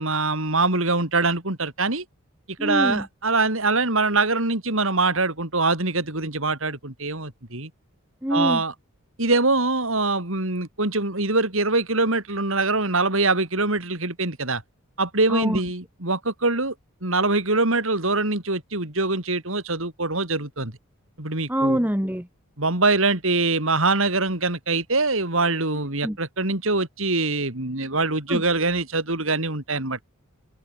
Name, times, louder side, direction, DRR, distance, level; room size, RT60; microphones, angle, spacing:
voice 1, 0.0-2.0 2.6-7.7 8.3-8.7 9.2-14.6 15.0-16.7 17.0-20.7 21.2-21.8 22.6-30.0, right 3 dB, 65° right, 4.3 m, -23 dB
voice 2, 2.6-3.0 8.2-8.6 15.3-15.6 21.5-22.3 26.0-26.2 28.3-28.4, equal, 10° right, 2.4 m, -24 dB
head